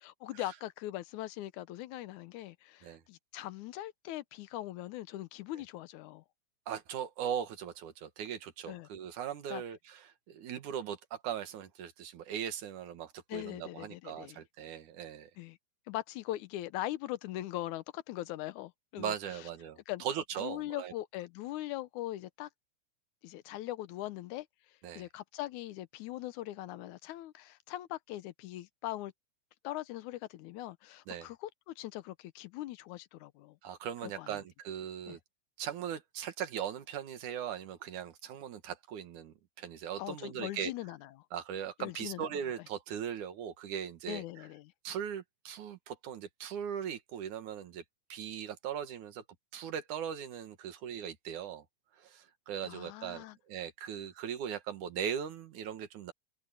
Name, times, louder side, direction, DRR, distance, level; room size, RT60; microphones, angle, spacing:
voice 1, 0.0-6.2 8.7-8.9 9.5-9.6 13.3-14.4 15.4-15.6 15.9-19.5 19.9-20.0 20.4-22.5 23.2-24.5 24.9-29.1 29.6-33.6 34.0-34.4 35.1-35.2 40.0-41.1 41.8-42.3 44.1-44.7 52.6-53.4, left 15 dB, 80° left, 2.1 m, -41 dB
voice 2, 6.7-15.3 19.0-20.9 24.8-25.1 31.1-31.3 33.6-35.2 35.6-40.7 41.3-44.2 44.8-47.8 48.1-49.2 49.5-51.6 52.0-56.1, right 9 dB, 75° right, 3.0 m, -39 dB
open air
omnidirectional pair, 3.6 m